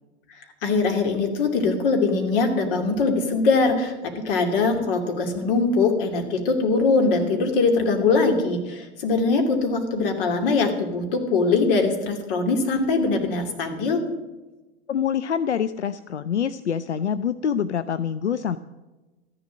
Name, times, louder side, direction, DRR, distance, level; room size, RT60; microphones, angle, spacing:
voice 1, 0.6-3.9 4.2-14.0, left 3 dB, 55° left, 4 dB, 2.8 m, -22 dB
voice 2, 14.9-18.6, left 8 dB, 90° left, 13 dB, 0.5 m, -25 dB
13.5 x 11.0 x 6.3 m, 1.1 s
figure-of-eight pair, 100°, 33 cm